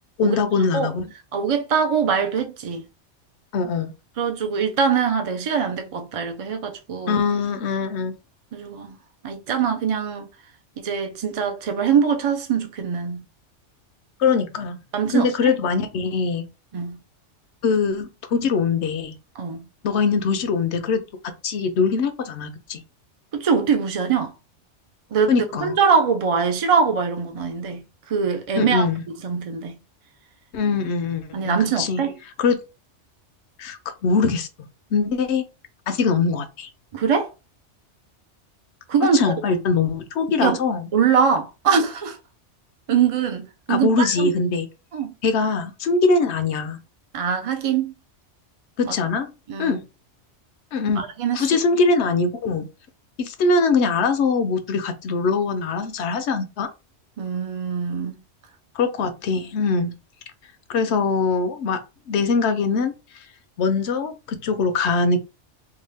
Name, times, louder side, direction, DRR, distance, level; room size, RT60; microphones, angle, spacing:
voice 1, 0.2-1.1 3.5-3.9 7.1-8.1 14.2-14.8 15.1-16.5 17.6-19.1 19.8-21.0 21.4-22.8 25.3-25.8 28.6-29.0 30.5-32.0 32.4-32.6 33.6-34.5 34.9-35.4 35.9-36.7 39.0-40.9 43.7-44.7 45.2-46.8 48.8-49.3 49.6-49.8 50.7-51.0 51.3-52.7 53.2-56.7 58.7-59.9 60.7-61.8 62.1-62.9 63.6-65.2, left 4 dB, 70° left, 0.8 m, -22 dB
voice 2, 1.3-2.8 4.2-7.2 8.5-9.0 9.2-10.3 10.8-13.2 14.9-15.5 16.7-17.0 19.4-19.7 23.3-24.3 25.1-25.3 25.6-28.9 29.2-29.8 31.3-32.1 36.9-37.3 38.9-39.3 40.4-40.6 40.9-42.2 42.9-44.3 44.9-45.1 47.1-47.9 48.8-48.9 49.5-49.8 51.0-51.4 57.2-58.2, right 6 dB, 45° right, 0.4 m, -22 dB
2.7 x 2.3 x 3.3 m
omnidirectional pair, 1.2 m